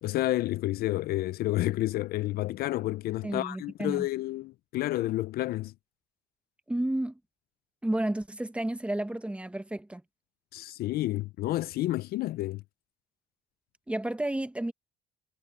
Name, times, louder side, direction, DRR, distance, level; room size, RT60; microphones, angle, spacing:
voice 1, 0.0-5.7 10.5-12.6, left 16 dB, 65° left, 0.4 m, -30 dB
voice 2, 3.2-4.1 6.7-7.2 7.8-10.0 13.9-14.7, right 1 dB, 5° right, 1.4 m, -31 dB
cardioid pair, 110°, 17 cm